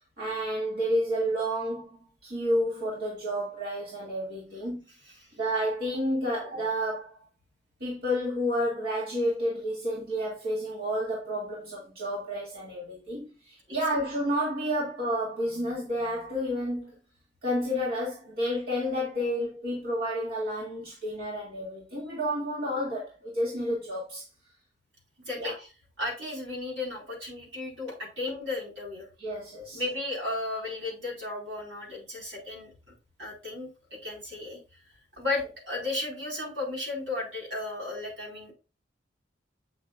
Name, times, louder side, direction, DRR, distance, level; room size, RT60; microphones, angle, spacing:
voice 1, 0.2-4.8 5.4-7.2 7.8-16.9 17.4-24.3 25.4-25.5 29.2-29.8, equal, 55° right, 2.3 m, -30 dB
voice 2, 25.3-25.7 26.0-29.1 29.7-32.7 33.2-34.6 35.2-38.5, left 2 dB, 80° right, 4.4 m, -34 dB
8.4 x 6.3 x 2.4 m
head